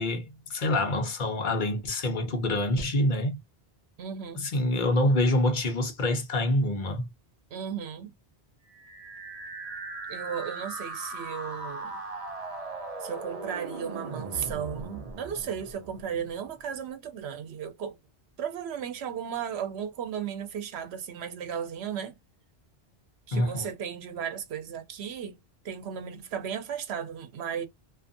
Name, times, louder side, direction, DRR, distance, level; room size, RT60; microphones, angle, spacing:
voice 1, 0.0-3.4 4.4-7.1 23.3-23.7, left 1 dB, 55° left, 0.9 m, -26 dB
voice 2, 4.0-4.4 7.5-8.1 10.1-12.0 13.0-18.0 18.4-22.2 23.3-25.4 25.6-27.7, right 8 dB, 90° right, 0.9 m, -35 dB
sound 1, 8.7-16.7, right 3 dB, 45° right, 0.6 m, -39 dB
2.5 x 2.5 x 2.5 m
omnidirectional pair, 1.1 m